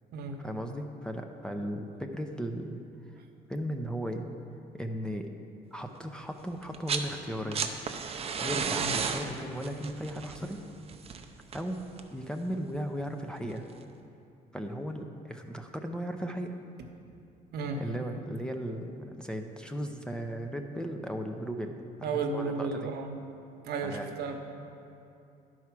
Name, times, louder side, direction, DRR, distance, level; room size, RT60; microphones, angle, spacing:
voice 1, 0.4-2.8 3.5-4.3 4.7-5.3 5.7-7.7 8.4-10.6 11.5-11.8 12.1-13.6 14.5-16.5 17.8-22.9 23.8-24.1, equal, 5° left, 4 dB, 0.5 m, -36 dB
sound 1, 6.6-7.1 7.4-12.2 13.5-13.6, right 6 dB, 35° right, 0.6 m, -34 dB
voice 2, 22.0-23.1 23.6-24.4, right 4 dB, 70° right, 3 dB, 0.9 m, -33 dB
11.0 x 4.7 x 5.8 m, 2.6 s
cardioid pair, 110°, 17 cm